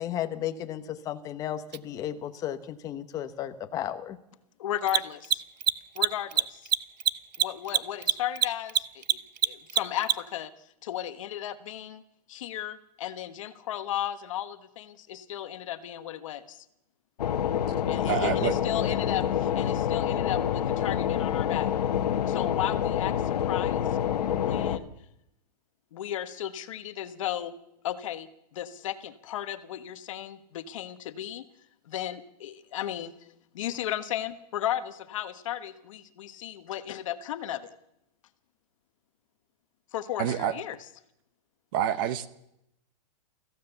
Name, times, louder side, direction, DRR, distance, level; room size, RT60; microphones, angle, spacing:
voice 1, 0.0-4.2, left 11 dB, 15° left, 8 dB, 1.0 m, -34 dB
Mechanisms, 1.7-1.8 4.8-10.4, right 10 dB, 90° right, 0.8 m, -25 dB
voice 2, 4.6-5.4 5.9-6.7 7.4-10.5 10.8-12.0 12.3-16.6 17.9-21.7 22.3-23.9 24.3-24.9 25.9-27.5 27.8-31.4 31.8-33.1 33.5-37.7 39.9-40.8, left 11 dB, 50° left, 11 dB, 1.4 m, -35 dB
sound 1, 17.2-24.8, left 9 dB, 75° left, 1.4 m, -27 dB
voice 3, 18.1-18.5 40.2-40.5 41.7-42.3, right 10 dB, 30° right, 14 dB, 0.9 m, -27 dB
24.5 x 15.5 x 6.9 m, 0.83 s
hypercardioid pair, 170°, 21 cm